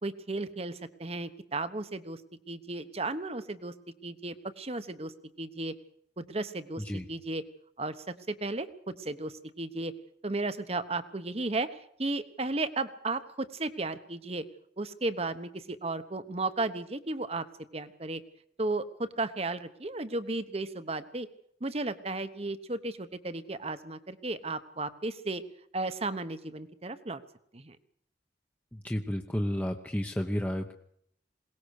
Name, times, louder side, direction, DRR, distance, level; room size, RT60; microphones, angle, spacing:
voice 1, 0.0-2.2 2.5-3.7 4.0-5.1 5.4-5.7 6.2-7.4 7.8-7.9 8.3-9.9 10.2-14.4 14.8-17.5 17.7-18.2 18.6-21.3 21.6-25.4 25.7-27.2 27.5-27.8, right 2 dB, 35° right, 11 dB, 1.2 m, -34 dB
voice 2, 28.8-30.7, equal, 10° left, 2 dB, 1.0 m, -31 dB
22.0 x 18.5 x 6.6 m, 0.67 s
head